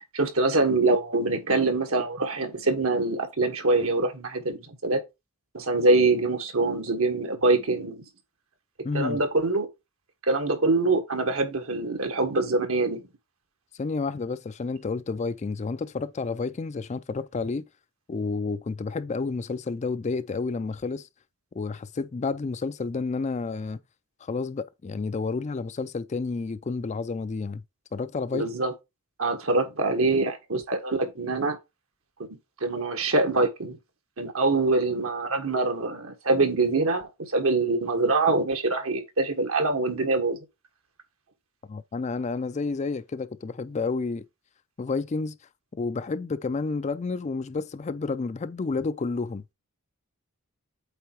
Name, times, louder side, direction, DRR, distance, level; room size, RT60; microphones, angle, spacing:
voice 1, 0.0-5.0 5.5-8.0 8.9-9.7 10.3-13.0 28.3-28.7 29.2-31.6 32.6-33.8 34.2-40.4, right 3 dB, 70° right, 1.5 m, -24 dB
voice 2, 8.8-9.2 13.7-17.6 18.1-21.1 21.5-23.8 24.2-27.6 27.9-28.5 41.7-44.3 44.8-45.4 45.7-49.4, left 4 dB, 30° left, 0.4 m, -30 dB
8.3 x 3.3 x 4.6 m
head